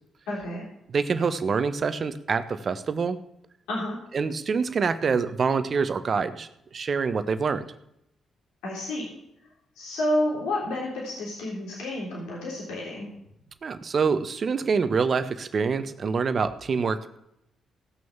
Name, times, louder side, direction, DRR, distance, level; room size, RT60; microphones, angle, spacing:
voice 1, 0.3-0.6 3.7-4.0 8.6-9.1 9.8-13.1, left 1 dB, 85° left, -4 dB, 3.6 m, -30 dB
voice 2, 0.9-3.2 4.1-7.6 13.6-17.2, right 5 dB, 55° right, 11 dB, 1.2 m, -26 dB
16.5 x 6.4 x 7.3 m, 0.80 s
supercardioid pair, 50°, 0 cm